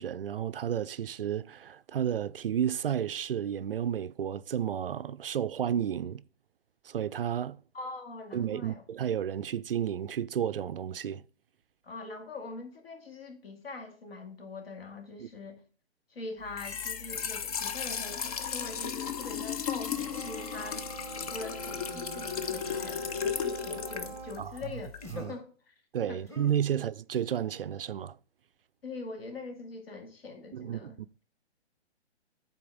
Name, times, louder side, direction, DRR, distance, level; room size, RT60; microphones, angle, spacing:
voice 1, 0.0-6.2 6.8-7.6 8.3-11.2 15.2-15.3 24.4-24.5 25.1-25.3 25.9-28.2 30.5-31.1, right 9 dB, 55° right, 0.4 m, -32 dB
voice 2, 7.7-8.8 11.8-15.6 16.1-20.8 21.2-24.9 25.2-25.8 26.1-26.2 26.7-26.8 28.8-31.0, left 3 dB, 60° left, 2.1 m, -43 dB
Trickle dribble / Fill (with liquid), 16.4-25.2, left 7 dB, 35° left, 0.6 m, -35 dB
Brass instrument, 20.1-24.5, right 7 dB, 10° right, 0.6 m, -44 dB
sound 1, 21.9-22.6 23.5-23.9 24.5-24.7 25.0-25.4 26.3-26.5, left 2 dB, 10° left, 1.4 m, -47 dB
9.5 x 4.3 x 3.8 m
figure-of-eight pair, 130°, 33 cm